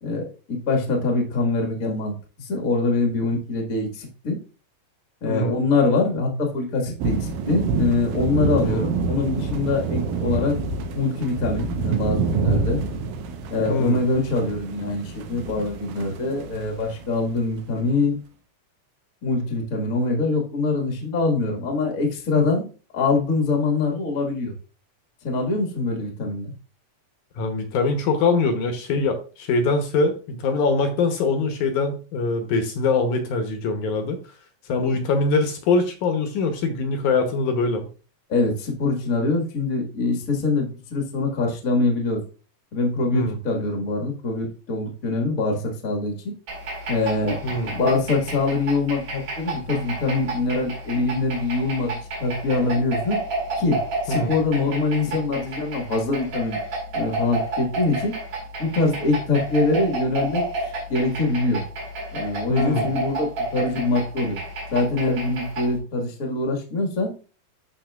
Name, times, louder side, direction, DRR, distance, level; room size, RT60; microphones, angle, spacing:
voice 1, 0.0-4.4 5.2-10.6 10.9-12.8 13.5-18.2 19.2-22.7 22.9-24.5 25.2-26.5 38.3-42.2 42.7-46.3 46.9-47.4 47.7-51.9 52.2-53.2 53.6-53.8 54.0-56.6 56.9-58.1 58.6-60.4 60.9-61.6 62.1-64.4 64.7-67.1, left 3 dB, 40° left, 1 dB, 1.2 m, -24 dB
voice 2, 5.3-5.6 8.6-8.9 13.7-14.0 22.4-22.5 27.4-34.2 34.7-37.9 43.1-43.4 47.4-47.7 54.1-54.3 62.5-62.9, left 3 dB, 70° left, 6 dB, 2.1 m, -23 dB
sound 1, 7.0-17.1, right 4 dB, 90° right, 2.5 m, -27 dB
sound 2, 46.5-65.8, right 2 dB, 45° right, 3.1 m, -31 dB
12.0 x 4.3 x 2.3 m, 0.35 s
omnidirectional pair, 3.9 m